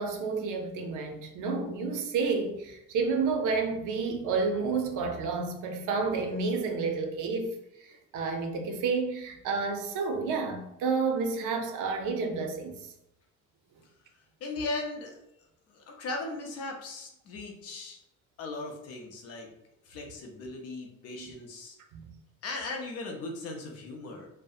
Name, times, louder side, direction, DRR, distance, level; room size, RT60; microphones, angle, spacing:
voice 1, 0.0-7.5 7.8-12.9 21.2-21.3 21.9-22.1, right 4 dB, 80° right, 0.5 m, -30 dB
voice 2, 14.4-15.2 15.7-18.0 18.4-19.5 19.8-21.8 22.4-24.3, left 2 dB, 55° left, 0.5 m, -38 dB
2.7 x 2.0 x 2.3 m
cardioid pair, 180°, 30 cm